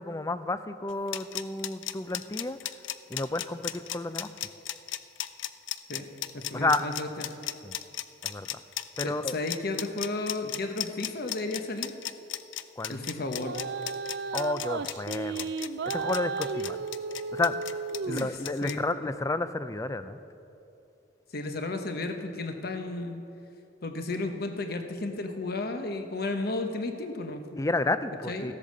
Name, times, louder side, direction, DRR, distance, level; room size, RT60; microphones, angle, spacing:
voice 1, 0.0-2.6 3.1-4.3 6.5-6.9 7.6-7.8 8.2-8.6 9.0-9.3 12.8-13.1 14.3-15.5 15.8-16.8 17.3-17.8 18.1-20.2 27.5-28.5, left 2 dB, 15° left, 12 dB, 0.4 m, -31 dB
sound 1, 0.9-18.7, left 13 dB, 80° left, 0.5 m, -35 dB
voice 2, 6.3-7.3 9.0-11.9 12.9-13.6 18.1-18.2 18.6-18.8 21.3-23.2 23.8-27.6 28.3-28.5, left 2 dB, 55° left, 6 dB, 1.1 m, -33 dB
sound 2, 13.4-18.4, right 4 dB, 60° right, 0.4 m, -34 dB
14.5 x 8.6 x 6.6 m, 2.8 s
head